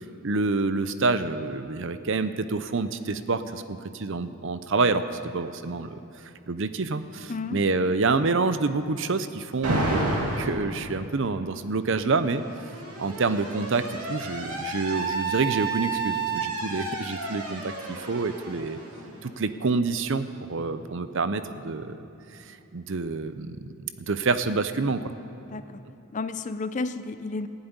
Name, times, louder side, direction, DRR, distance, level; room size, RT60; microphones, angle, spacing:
voice 1, 0.2-6.0 6.5-12.4 13.0-18.8 19.2-22.0 22.5-23.7 24.0-25.1, right 3 dB, 55° right, 12 dB, 0.6 m, -27 dB
voice 2, 7.3-7.6 25.4-25.8 26.1-27.5, left 3 dB, 35° left, 12 dB, 0.5 m, -32 dB
Alarm, 9.6-10.6 11.8-19.5, right 3 dB, 90° right, 2.6 m, -31 dB
15.0 x 7.9 x 9.8 m, 2.9 s
head